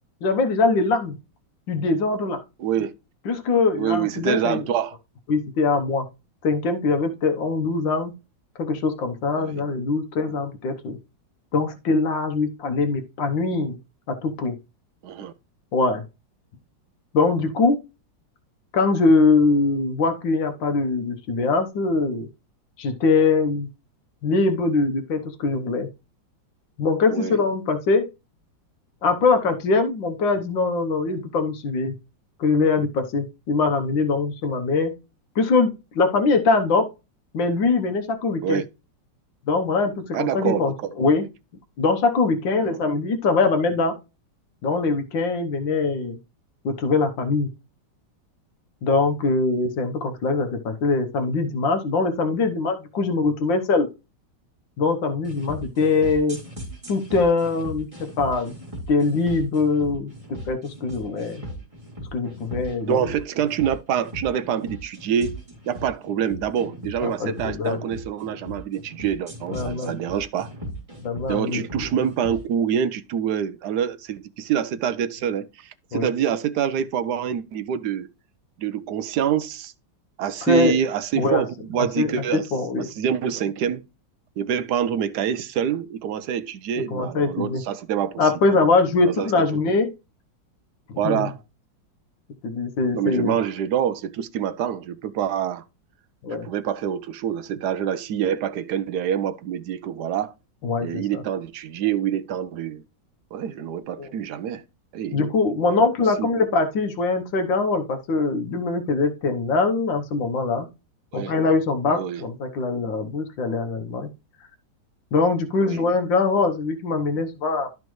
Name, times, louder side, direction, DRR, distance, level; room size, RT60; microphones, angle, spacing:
voice 1, 0.2-1.2 1.7-2.4 3.2-4.6 5.3-6.0 6.4-8.1 8.6-11.0 11.5-13.8 14.1-14.5 15.7-16.0 17.1-17.8 18.7-22.3 22.8-23.7 24.2-25.9 26.8-28.0 29.0-31.9 32.4-34.9 35.3-36.8 37.3-38.6 39.5-41.3 41.8-43.9 44.6-46.2 46.6-47.5 48.8-53.9 54.8-56.4 56.9-58.5 58.9-60.1 60.5-61.4 62.1-63.0 67.0-67.8 69.5-69.9 71.0-71.9 75.9-76.1 80.4-80.7 81.2-81.4 81.8-82.9 86.9-87.6 88.2-89.9 90.9-91.3 92.4-93.4 96.2-96.5 100.6-101.2 104.0-104.1 105.1-110.7 111.1-114.1 115.1-117.8, left 3 dB, 80° left, 1.8 m, -22 dB
voice 2, 2.6-2.9 3.8-5.0 9.4-9.6 15.0-15.3 27.1-27.4 38.4-38.6 40.1-40.9 42.5-42.8 62.8-65.4 65.7-70.5 71.3-78.1 78.6-79.7 80.2-82.5 82.8-83.8 84.4-88.3 89.0-89.3 91.0-91.4 92.9-95.6 96.3-100.3 100.8-102.8 103.3-104.6 104.9-105.2 106.2-106.3 111.1-111.3 111.9-112.2 115.6-115.8, right 9 dB, 70° right, 1.1 m, -26 dB
sound 1, 55.2-72.4, right 1 dB, 15° right, 2.9 m, -38 dB
12.0 x 5.1 x 3.1 m
omnidirectional pair, 2.0 m